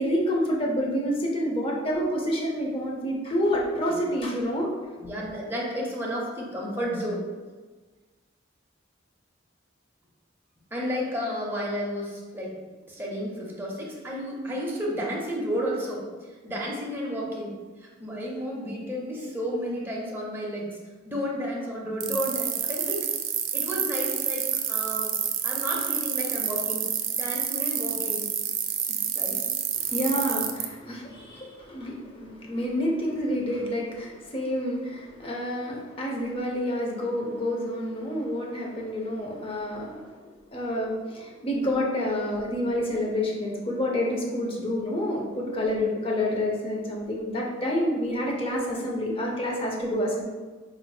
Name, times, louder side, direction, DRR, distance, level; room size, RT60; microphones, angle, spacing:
voice 1, 0.0-4.7 29.7-40.1 40.5-50.2, equal, 30° left, -2 dB, 0.6 m, -28 dB
voice 2, 5.0-7.2 10.7-12.6 12.9-17.5 17.8-20.8 21.0-23.0 23.5-25.1 25.4-26.9 27.2-28.2 28.9-29.4 45.4-45.8, equal, 10° right, -3 dB, 0.6 m, -32 dB
sound 1, 22.0-30.6, right 9 dB, 70° right, 0.4 m, -28 dB
4.2 x 2.8 x 2.3 m, 1.4 s
head